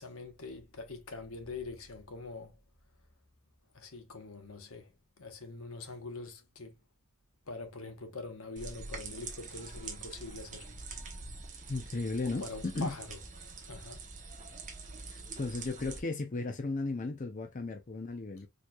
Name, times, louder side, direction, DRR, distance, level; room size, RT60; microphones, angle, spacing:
voice 1, 0.0-2.5 3.7-4.9 5.2-6.8 7.5-10.7 12.2-13.2 13.7-14.0, left 3 dB, 75° left, 1.0 m, -44 dB
sound 1, 8.6-16.0, right 4 dB, 35° right, 0.9 m, -45 dB
voice 2, 11.7-13.0 15.1-18.5, left 3 dB, 35° left, 0.5 m, -35 dB
4.4 x 3.2 x 2.3 m
head